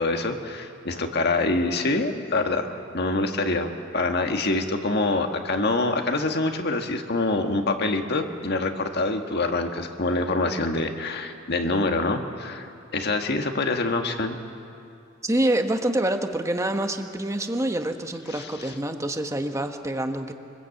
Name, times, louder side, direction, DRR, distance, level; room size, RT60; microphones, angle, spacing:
voice 1, 0.0-12.7 12.9-14.4 18.3-18.5, left 2 dB, 55° left, 4 dB, 1.7 m, -25 dB
voice 2, 15.2-20.3, right 1 dB, 15° right, 6 dB, 1.3 m, -26 dB
24.0 x 21.0 x 8.5 m, 2.5 s
head